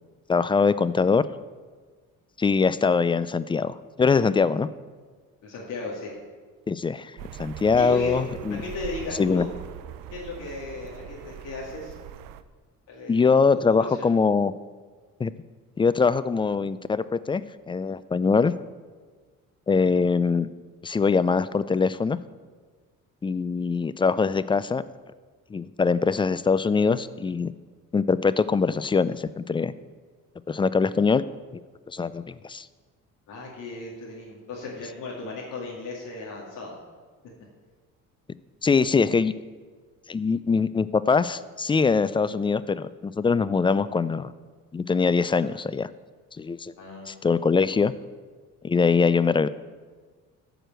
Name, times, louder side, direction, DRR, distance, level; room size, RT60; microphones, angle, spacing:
voice 1, 0.3-1.2 2.4-4.7 6.7-7.1 7.4-8.6 9.2-9.4 13.1-14.5 15.2-15.3 15.8-17.4 17.7-18.5 19.7-20.5 20.8-22.2 23.2-24.8 25.5-27.5 27.9-29.7 30.5-31.2 31.9-32.7 38.6-39.3 40.1-44.3 44.7-45.9 46.4-46.7 47.1-47.9 48.6-49.5, left 5 dB, 15° left, 16 dB, 0.3 m, -22 dB
voice 2, 5.4-6.1 7.7-8.2 8.5-9.5 10.1-11.9 12.9-13.2 13.5-14.0 19.7-19.9 33.3-36.7 46.8-47.1, left 3 dB, 70° left, -4 dB, 2.3 m, -36 dB
sound 1, 7.2-12.4, right 10 dB, 85° right, 0.6 m, -41 dB
13.5 x 5.0 x 7.6 m, 1.5 s
cardioid pair, 95°, 32 cm